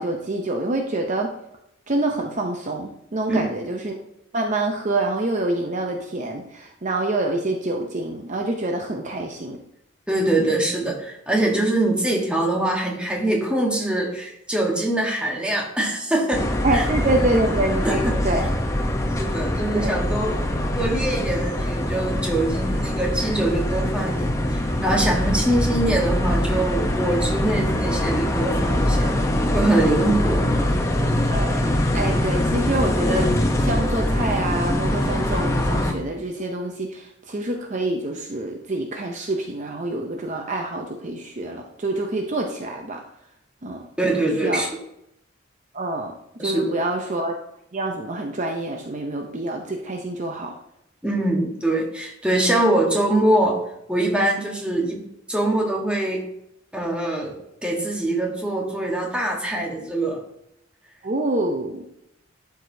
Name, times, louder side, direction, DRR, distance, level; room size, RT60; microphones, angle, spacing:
voice 1, 0.0-1.3 1.9-4.0 4.3-9.6 16.6-18.5 19.7-20.0 29.0-29.3 31.2-31.7 31.9-33.3 33.6-43.0 43.6-43.8 44.2-44.7 45.7-46.1 46.4-47.4 47.7-50.5 61.0-61.9, right 2 dB, 35° right, 3 dB, 0.6 m, -26 dB
voice 2, 10.1-16.9 17.8-18.2 19.2-20.4 20.8-29.1 29.5-30.5 44.0-44.8 46.4-46.8 51.0-53.6 53.9-55.0 55.3-56.2 56.7-57.4 57.6-60.2, right 1 dB, 5° right, -1 dB, 1.3 m, -23 dB
sound 1, 16.3-35.9, left 1 dB, 15° left, 0.7 m, -23 dB
11.5 x 4.8 x 2.7 m, 0.80 s
head